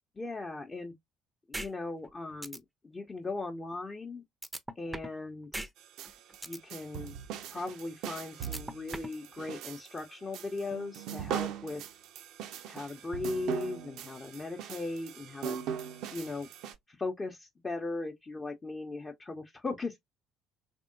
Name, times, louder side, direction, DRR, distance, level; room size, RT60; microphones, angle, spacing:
voice 1, 0.2-0.9 1.5-4.2 4.8-5.7 6.5-7.2 7.5-11.8 12.7-15.6 16.1-16.5 16.9-20.0, left 3 dB, 25° left, 0.8 m, -38 dB
sound 1, 1.5-1.7 2.0-2.1 2.4-2.6 4.4-5.2 5.5-5.7 6.0-6.6 8.4-9.2, right 1 dB, 10° right, 0.6 m, -38 dB
sound 2, 5.8-16.7, right 9 dB, 55° right, 0.5 m, -40 dB
3.5 x 3.4 x 2.6 m
figure-of-eight pair, 50°, 0 cm